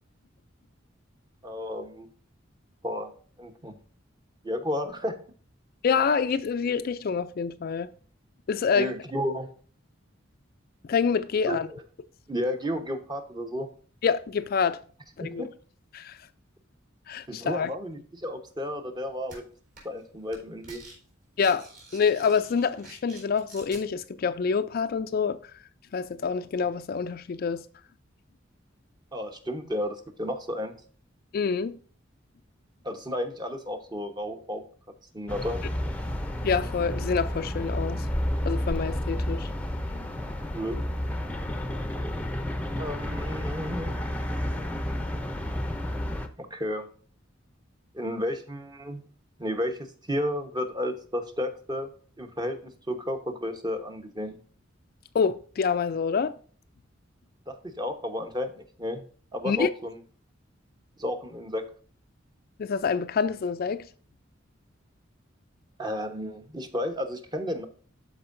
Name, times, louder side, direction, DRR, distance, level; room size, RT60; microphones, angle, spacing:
voice 1, 1.4-2.1 2.8-3.1 3.4-3.8 4.4-5.2 8.8-9.5 11.5-11.8 12.3-13.7 15.2-15.5 17.3-19.4 19.8-20.8 29.1-30.7 32.8-34.6 35.1-35.6 39.1-39.2 40.5-40.8 42.8-44.0 46.4-46.9 47.9-49.0 49.4-49.8 50.1-51.9 52.2-54.4 57.5-59.0 59.3-60.0 61.0-61.7 65.8-67.6, left 1 dB, 20° right, 1.0 m, -32 dB
voice 2, 5.8-7.9 8.5-8.9 10.9-11.7 14.0-14.8 15.2-15.4 15.9-16.2 17.1-17.7 21.4-21.7 21.9-25.4 25.9-27.6 31.3-31.8 36.4-38.1 38.5-39.5 55.1-56.3 59.4-59.7 62.6-63.9, left 6 dB, 50° left, 0.4 m, -26 dB
sound 1, 19.3-19.4 19.8-20.0 20.3-21.0 21.2-23.8, right 2 dB, 45° right, 3.5 m, -48 dB
sound 2, 35.3-46.3, left 1 dB, 5° left, 0.7 m, -31 dB
12.5 x 4.6 x 2.5 m
head